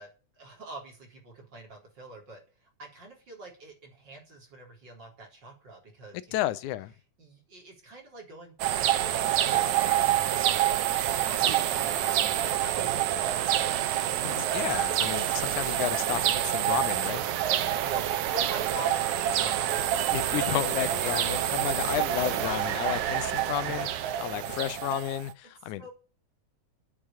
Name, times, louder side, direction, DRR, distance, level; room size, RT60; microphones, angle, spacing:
voice 1, 0.0-6.4 7.2-14.6 17.5-21.4 25.8-25.9, right 2 dB, 35° right, 4.5 m, -45 dB
voice 2, 6.1-6.9 14.2-17.2 20.1-25.9, left 14 dB, 85° left, 2.2 m, -32 dB
sound 1, 8.6-25.3, right 11 dB, 75° right, 2.3 m, -27 dB
8.9 x 8.5 x 8.7 m
omnidirectional pair, 3.4 m